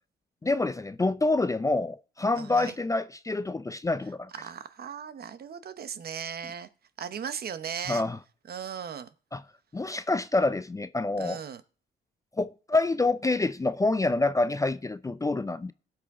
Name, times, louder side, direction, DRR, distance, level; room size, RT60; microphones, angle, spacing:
voice 1, 0.4-4.3 7.9-8.2 9.3-9.4 9.7-11.4 12.4-15.7, left 2 dB, 15° left, 0.5 m, -27 dB
voice 2, 2.4-2.8 4.3-6.7 7.0-8.0 8.5-9.1 11.2-11.6, right 7 dB, 50° right, 0.9 m, -37 dB
17.0 x 6.1 x 3.7 m
cardioid pair, 90°, 20 cm